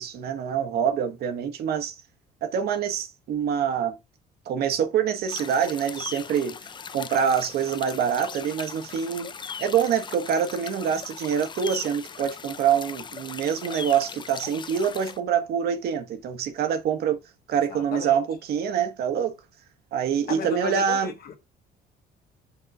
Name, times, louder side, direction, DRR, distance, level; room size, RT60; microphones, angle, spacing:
voice 1, 0.0-1.9 2.4-4.0 4.5-6.6 6.9-9.3 9.6-17.2 17.5-19.4 19.9-21.1, right 8 dB, 70° right, 1.3 m, -25 dB
sound 1, 5.3-15.2, left 6 dB, 25° left, 0.5 m, -39 dB
voice 2, 17.7-18.2 20.3-21.4, left 7 dB, 60° left, 1.7 m, -34 dB
5.5 x 3.7 x 6.0 m
cardioid pair, 110°, 17 cm